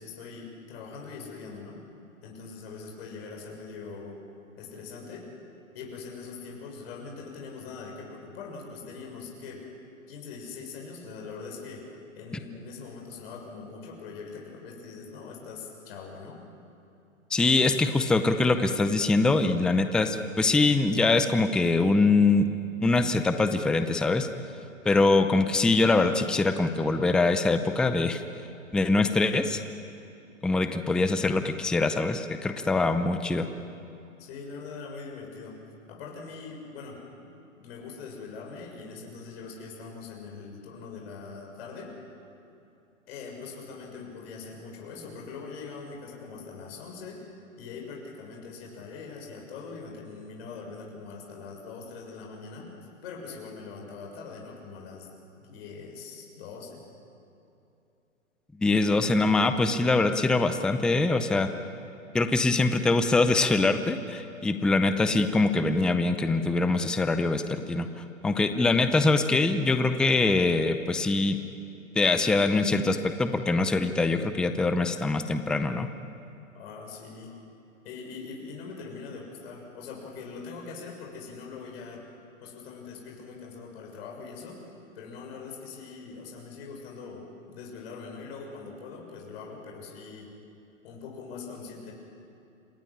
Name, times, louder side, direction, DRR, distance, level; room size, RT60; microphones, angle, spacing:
voice 1, 0.0-1.8 2.2-4.2 4.6-5.3 5.7-9.7 10.1-11.9 12.2-16.4 34.2-35.6 35.9-37.3 37.6-42.0 43.1-47.2 47.6-52.7 53.0-55.1 55.4-56.9 76.5-77.4 77.8-82.1 82.4-84.6 85.0-90.3 90.8-91.9, left 4 dB, 50° left, 0 dB, 6.8 m, -42 dB
voice 2, 17.3-22.5 22.8-24.3 24.8-28.2 28.7-29.6 30.4-33.5 58.6-61.5 62.1-67.9 68.2-71.4 72.0-75.9, left 3 dB, ahead, 9 dB, 0.6 m, -23 dB
27.0 x 19.0 x 10.0 m, 2.7 s
hypercardioid pair, 130°, 40 cm